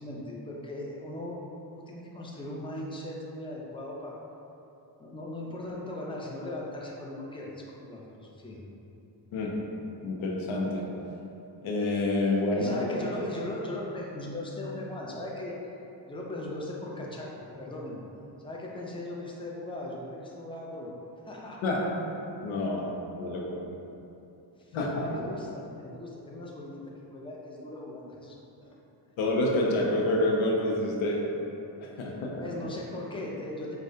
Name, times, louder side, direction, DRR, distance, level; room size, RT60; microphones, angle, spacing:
voice 1, 0.0-4.2 5.0-8.6 12.6-15.5 16.1-18.0 18.4-20.9 21.2-21.6 24.6-28.8 32.4-33.8, left 1 dB, 10° left, -3 dB, 0.6 m, -38 dB
voice 2, 10.0-10.9 11.6-12.9 21.6-21.9 22.4-23.6 24.7-25.2 29.2-31.2 31.8-32.3, left 2 dB, 90° left, -2 dB, 0.6 m, -28 dB
4.7 x 2.3 x 2.7 m, 2.9 s
cardioid pair, 60°, 47 cm